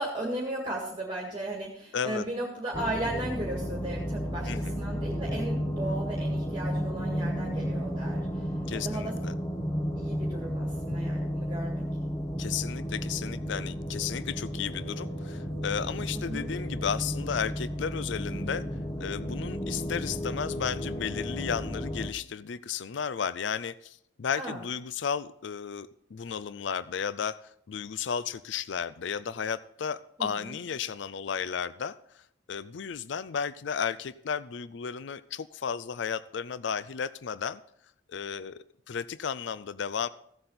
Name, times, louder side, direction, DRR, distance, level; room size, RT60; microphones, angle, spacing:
voice 1, 0.0-8.5 8.7-9.2 10.0-11.9 16.1-16.5 24.4-24.6 30.2-30.6, right 1 dB, 25° right, -2 dB, 1.9 m, -36 dB
voice 2, 1.9-2.2 4.5-4.8 8.7-9.3 12.4-18.6 19.0-32.2 32.5-37.6 38.1-40.1, left 7 dB, 70° left, 16 dB, 0.4 m, -34 dB
sound 1, 2.7-22.1, equal, 20° left, 1.1 m, -33 dB
15.5 x 7.7 x 4.3 m, 0.71 s
head